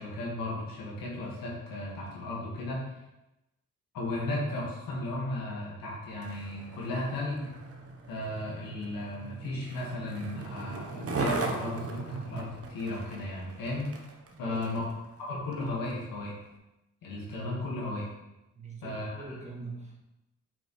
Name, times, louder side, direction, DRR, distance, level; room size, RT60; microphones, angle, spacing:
voice 1, 0.0-2.8 3.9-7.5 8.1-13.9 14.4-14.9 15.2-16.4 17.0-18.1 18.8-19.4, left 1 dB, 85° left, -4 dB, 1.8 m, -35 dB
Skateboard, 6.1-14.9 15.5-15.6, right 3 dB, 45° right, 1.0 m, -38 dB
voice 2, 14.3-14.9 18.5-20.0, right 3 dB, 20° right, -2 dB, 1.9 m, -43 dB
6.0 x 5.0 x 3.2 m, 0.94 s
supercardioid pair, 55°, 34 cm